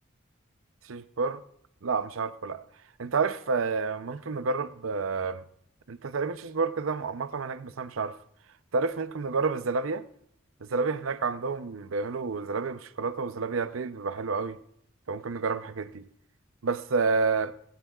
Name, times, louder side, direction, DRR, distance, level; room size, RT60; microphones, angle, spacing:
voice 1, 0.8-1.4 1.8-2.7 3.0-5.4 5.9-8.2 8.7-10.0 10.6-14.6 15.1-16.0 16.6-17.5, right 4 dB, 90° right, 0.6 m, -29 dB
19.0 x 15.5 x 2.4 m
head